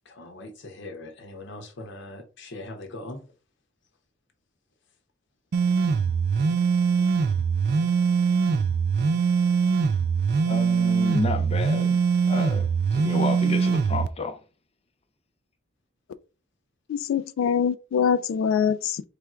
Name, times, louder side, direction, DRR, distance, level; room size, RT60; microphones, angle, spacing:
voice 1, 0.0-3.3, left 2 dB, 65° left, 0.8 m, -41 dB
sound 1, 5.5-14.1, right 5 dB, 55° right, 0.3 m, -22 dB
voice 2, 10.5-12.0 12.3-12.7 12.9-14.4, left 2 dB, 30° left, 0.5 m, -30 dB
voice 3, 16.9-19.0, left 7 dB, 85° left, 0.3 m, -24 dB
3.3 x 2.4 x 4.3 m
head